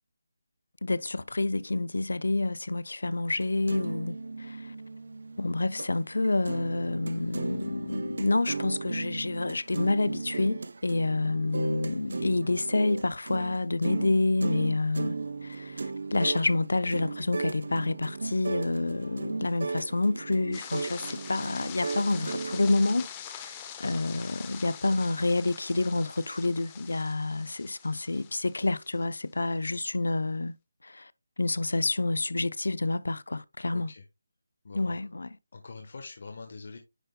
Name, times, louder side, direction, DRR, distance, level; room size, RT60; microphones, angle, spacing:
voice 1, 0.8-4.7 5.4-23.1 23.3-23.5 23.8-30.5 30.8-31.1 31.4-33.9 34.7-35.3, left 2 dB, 80° left, 0.6 m, -28 dB
sound 1, 3.4-5.9 6.2-23.1, right 3 dB, 65° right, 0.7 m, -36 dB
sound 2, 20.5-29.0, left 9 dB, 15° left, 0.8 m, -44 dB
voice 2, 33.7-34.0 34.6-35.0 35.5-36.8, left 4 dB, 55° left, 1.2 m, -44 dB
10.0 x 5.2 x 2.2 m
figure-of-eight pair, 170°, 0 cm